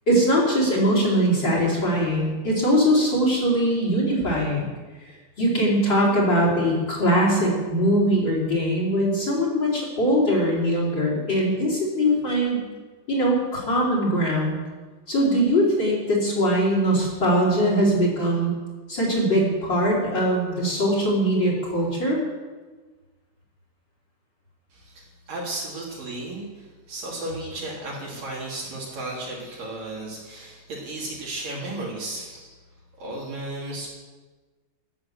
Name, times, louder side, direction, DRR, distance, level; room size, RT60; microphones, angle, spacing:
voice 1, 0.1-4.7 5.4-12.6 13.1-14.6 15.1-18.5 18.9-22.2, equal, 25° left, -3 dB, 4.9 m, -21 dB
voice 2, 24.7-32.4 33.0-33.9, right 2 dB, 50° right, -4 dB, 4.5 m, -34 dB
16.0 x 10.5 x 7.5 m, 1.3 s
omnidirectional pair, 5.1 m